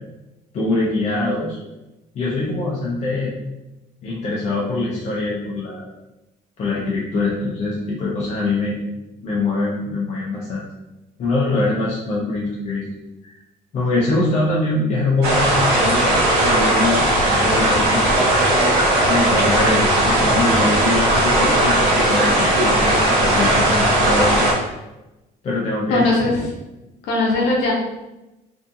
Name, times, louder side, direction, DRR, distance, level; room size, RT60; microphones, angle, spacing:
voice 1, 0.5-1.6 2.1-3.3 4.0-5.9 6.6-8.8 9.2-10.6 11.2-12.9 13.3-13.4 13.7-17.0 17.3-18.1 19.0-24.4 25.4-26.1, left 2 dB, 40° left, -5 dB, 0.6 m, -23 dB
sound 1, 15.2-24.5, right 1 dB, 80° right, 0.9 m, -17 dB
voice 2, 25.9-26.4 27.0-27.7, left 2 dB, 80° left, -2 dB, 0.7 m, -19 dB
2.6 x 2.5 x 2.4 m, 0.99 s
cardioid pair, 110°, 17 cm